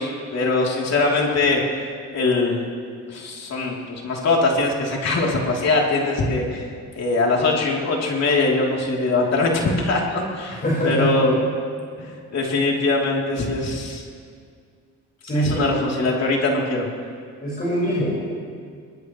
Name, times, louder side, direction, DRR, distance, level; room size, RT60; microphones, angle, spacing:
voice 1, 0.0-1.6 2.1-2.6 3.1-6.7 6.9-11.3 12.0-14.0 15.3-16.9, left 3 dB, 60° left, -2 dB, 3.4 m, -22 dB
voice 2, 10.6-11.5 15.2-15.8 17.4-18.3, equal, 30° left, -6 dB, 5.0 m, -23 dB
21.5 x 21.0 x 3.2 m, 2.1 s
cardioid pair, 90°, 30 cm